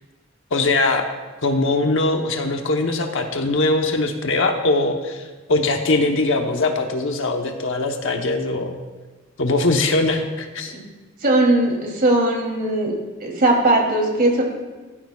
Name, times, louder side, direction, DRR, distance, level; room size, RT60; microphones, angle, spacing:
voice 1, 0.5-1.1 1.4-8.8 9.4-10.7, left 2 dB, 65° left, 3 dB, 1.0 m, -21 dB
voice 2, 11.2-12.9 13.2-14.4, right 1 dB, 45° right, 0 dB, 3.0 m, -18 dB
16.5 x 14.0 x 2.4 m, 1.3 s
head